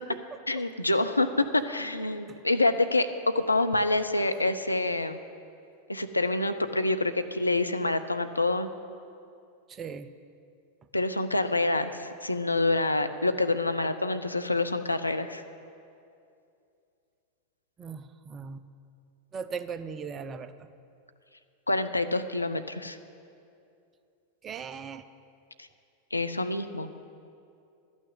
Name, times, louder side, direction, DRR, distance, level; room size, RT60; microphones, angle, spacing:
voice 1, 0.5-5.2 5.9-8.7 10.9-15.4 21.7-23.0 25.6-25.7 26.1-26.9, left 2 dB, 85° left, 9 dB, 0.5 m, -27 dB
voice 2, 9.7-10.1 17.8-18.6 19.3-20.5 24.4-25.0, right 6 dB, 25° right, 12 dB, 0.5 m, -38 dB
12.5 x 6.2 x 8.9 m, 2.5 s
figure-of-eight pair, 90°, 0 cm